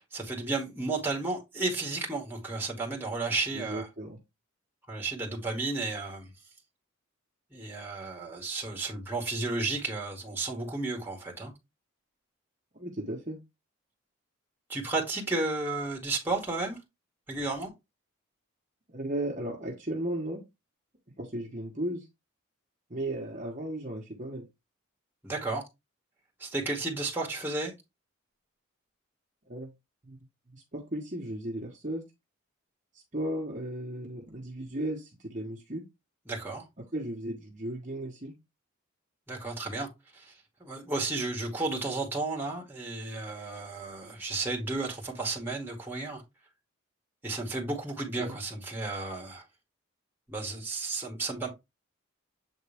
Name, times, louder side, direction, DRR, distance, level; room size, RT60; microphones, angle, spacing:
voice 1, 0.0-3.9 4.9-6.3 7.5-11.5 14.7-16.8 17.3-17.7 25.2-25.6 26.4-27.7 36.3-36.6 39.3-40.3 40.6-46.2 47.2-49.4 50.3-51.5, right 3 dB, 10° right, 1.9 m, -33 dB
voice 2, 3.5-4.2 12.7-13.4 18.9-20.4 21.2-22.1 22.9-24.4 29.5-29.7 30.0-30.2 30.5-32.0 33.1-35.8 36.9-38.3 48.2-48.4, right 1 dB, 35° right, 1.2 m, -35 dB
7.8 x 3.6 x 3.5 m
head